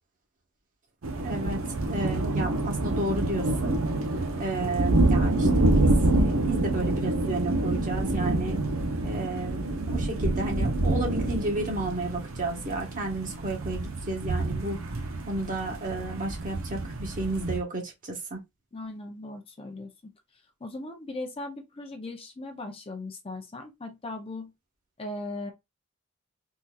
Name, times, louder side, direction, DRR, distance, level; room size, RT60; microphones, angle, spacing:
sound 1, 1.0-17.6, right 2 dB, 90° right, 0.7 m, -27 dB
voice 1, 1.2-3.8 4.4-8.6 9.0-14.8 15.3-18.4, right 2 dB, 40° right, 1.1 m, -32 dB
voice 2, 18.7-20.1 20.6-24.5 25.0-25.5, left 2 dB, 25° left, 0.6 m, -38 dB
3.7 x 2.8 x 2.3 m
head